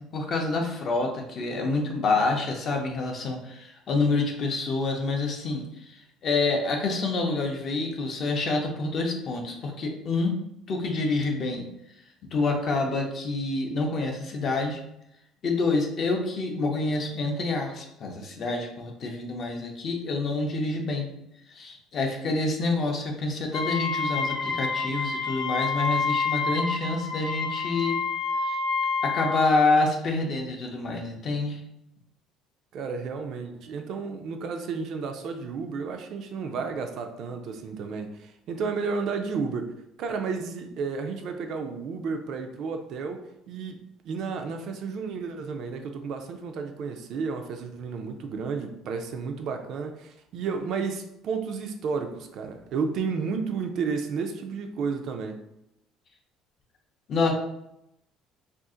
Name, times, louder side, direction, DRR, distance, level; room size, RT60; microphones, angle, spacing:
voice 1, 0.1-10.4 10.7-11.6 12.3-14.8 15.4-21.1 21.5-28.0 28.3-28.6 29.0-31.6 57.1-57.3, left 3 dB, 35° left, 2 dB, 0.5 m, -27 dB
Wind instrument woodwind instrument, 23.5-29.5, left 4 dB, 65° left, 0.9 m, -28 dB
voice 2, 32.7-39.7 40.0-43.8 44.0-55.4, right 5 dB, 50° right, 5 dB, 0.3 m, -32 dB
2.5 x 2.4 x 3.7 m, 0.82 s
cardioid pair, 160°, 0 cm